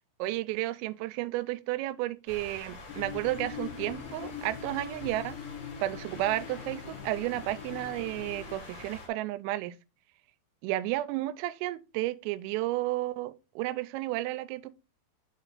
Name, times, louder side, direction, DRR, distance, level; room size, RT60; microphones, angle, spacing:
voice 1, 0.2-5.4 5.8-9.8 10.6-14.7, right 16 dB, 90° right, 3.2 m, -32 dB
sound 1, 2.3-9.1, left 3 dB, 45° left, 3.1 m, -47 dB
sound 2, 2.9-8.6, left 8 dB, 80° left, 2.4 m, -42 dB
6.9 x 4.5 x 3.8 m
omnidirectional pair, 5.8 m